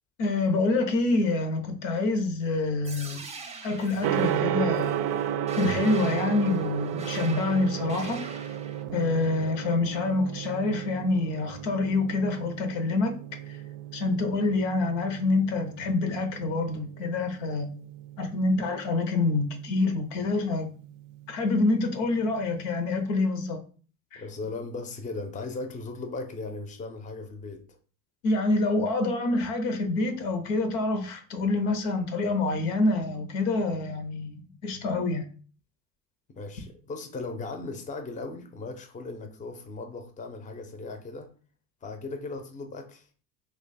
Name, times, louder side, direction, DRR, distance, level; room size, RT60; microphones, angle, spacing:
voice 1, 0.2-3.2 3.6-4.9 5.6-8.2 8.9-13.2 13.5-13.6 13.9-17.7 18.2-20.7 21.3-23.6 24.1-24.2 28.2-35.2, left 3 dB, 75° left, 0.9 m, -26 dB
sound 1, 2.8-8.8, right 4 dB, 15° right, 0.7 m, -43 dB
Gong, 4.0-23.0, right 10 dB, 55° right, 0.4 m, -34 dB
voice 2, 24.1-27.6 36.3-41.3 41.8-43.1, left 3 dB, 20° left, 0.6 m, -37 dB
2.9 x 2.3 x 4.1 m
supercardioid pair, 90°, 39 cm